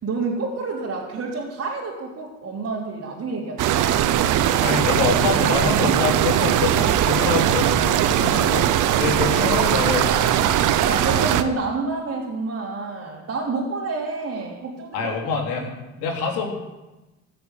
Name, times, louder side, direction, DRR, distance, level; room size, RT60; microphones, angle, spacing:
voice 1, 0.0-4.1 9.0-9.2 10.8-15.1 15.6-15.7 16.0-16.1, right 3 dB, 40° right, -5 dB, 3.3 m, -29 dB
sound 1, 3.6-11.4, right 11 dB, 60° right, 1.0 m, -20 dB
voice 2, 4.6-8.7 8.9-10.7 14.9-15.7 16.0-16.5, left 5 dB, 70° left, 0 dB, 3.4 m, -26 dB
15.0 x 6.7 x 8.1 m, 1.1 s
hypercardioid pair, 65°, 36 cm